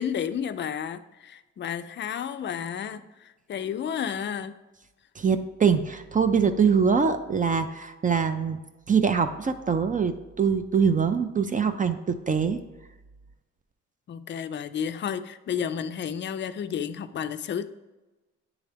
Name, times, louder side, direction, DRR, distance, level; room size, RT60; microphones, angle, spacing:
voice 1, 0.0-4.5 14.1-17.7, left 8 dB, 40° left, 11 dB, 0.4 m, -32 dB
voice 2, 5.2-8.6 8.9-12.6, right 6 dB, 25° right, 9 dB, 0.4 m, -23 dB
9.4 x 3.6 x 3.4 m, 1.1 s
cardioid pair, 90°, 30 cm